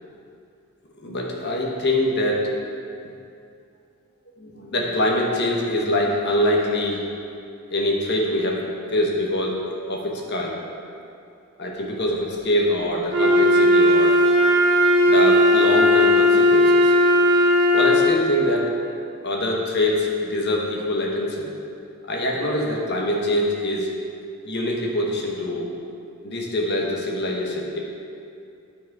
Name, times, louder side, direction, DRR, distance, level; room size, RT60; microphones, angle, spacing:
voice 1, 1.0-2.5 4.4-7.0 7.7-9.6 9.9-10.6 11.6-14.2 15.1-17.0 17.7-18.8 19.2-21.5 22.0-23.9 24.4-25.7 26.2-27.8, left 1 dB, 50° left, -1 dB, 1.1 m, -24 dB
Wind instrument woodwind instrument, 13.1-18.2, left 1 dB, 55° right, 1.1 m, -16 dB
9.2 x 4.7 x 4.7 m, 2.6 s
head